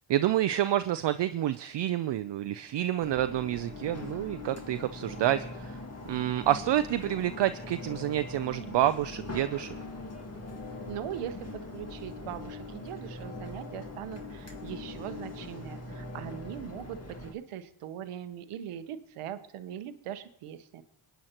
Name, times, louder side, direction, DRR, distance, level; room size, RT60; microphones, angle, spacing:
voice 1, 0.1-5.8 6.1-9.7, right 12 dB, 60° right, 11 dB, 0.5 m, -28 dB
sound 1, 3.0-17.3, left 2 dB, 30° left, 2.0 m, -41 dB
voice 2, 10.9-20.8, right 10 dB, 85° right, 11 dB, 0.9 m, -40 dB
24.5 x 9.2 x 2.9 m, 0.73 s
supercardioid pair, 50°, 50 cm